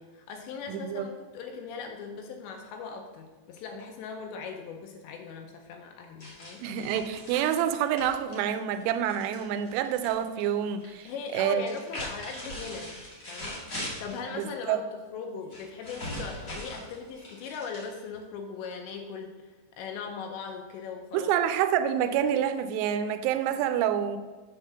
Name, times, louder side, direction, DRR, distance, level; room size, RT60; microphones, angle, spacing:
voice 1, 0.0-6.7 11.0-13.0 13.3-13.7 14.0-14.8 15.1-21.3, left 5 dB, 80° left, 3 dB, 2.7 m, -39 dB
voice 2, 0.7-1.1 6.6-11.8 14.3-14.8 21.1-24.2, right 9 dB, 90° right, 10 dB, 3.0 m, -28 dB
sound 1, 6.2-10.1 10.4-11.0 11.6-14.2 15.5-18.2, left 1 dB, 60° left, 0.8 m, -40 dB
8.0 x 3.7 x 6.7 m, 1.2 s
omnidirectional pair, 5.4 m